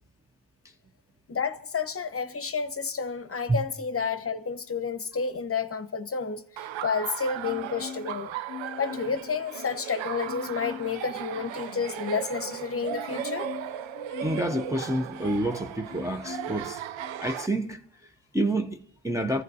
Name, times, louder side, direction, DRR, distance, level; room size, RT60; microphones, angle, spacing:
voice 1, 1.3-6.4 6.8-8.3 8.8-13.5, left 5 dB, 30° left, 0.8 m, -30 dB
Laughter, 6.6-17.5, right 11 dB, 80° right, 0.6 m, -37 dB
Marimba xylophone, 7.4-8.2 8.5-9.9 10.2-11.0 11.3-15.5 15.9-16.6 17.0-17.2, left 9 dB, 85° left, 0.7 m, -43 dB
voice 2, 14.2-16.8 17.2-19.4, right 1 dB, 5° right, 0.6 m, -29 dB
28.5 x 14.5 x 2.7 m
cardioid pair, 95°, 45 cm